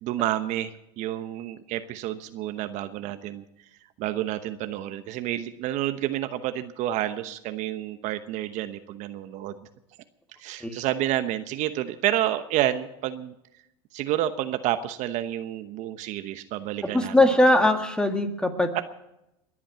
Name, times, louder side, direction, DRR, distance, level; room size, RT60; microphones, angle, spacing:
voice 1, 0.0-3.4 4.0-9.7 10.4-13.4 13.9-17.2 18.7-18.8, right 13 dB, 55° right, 10 dB, 1.0 m, -29 dB
voice 2, 16.9-18.8, left 1 dB, 5° left, 6 dB, 2.0 m, -21 dB
21.5 x 8.7 x 7.5 m, 0.85 s
supercardioid pair, 100°, 15 cm